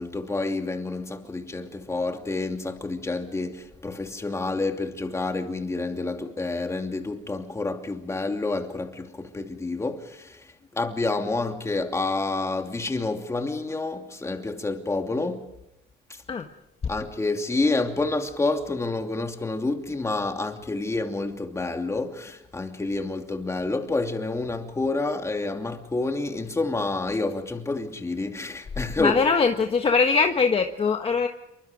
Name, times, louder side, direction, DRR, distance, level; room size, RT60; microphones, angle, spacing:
voice 1, 0.0-15.5 16.1-16.2 16.9-29.2, left 3 dB, 15° left, 2.8 m, -28 dB
voice 2, 29.0-31.3, left 5 dB, 35° left, 1.5 m, -22 dB
27.5 x 24.0 x 5.1 m
cardioid pair, 110°, 17 cm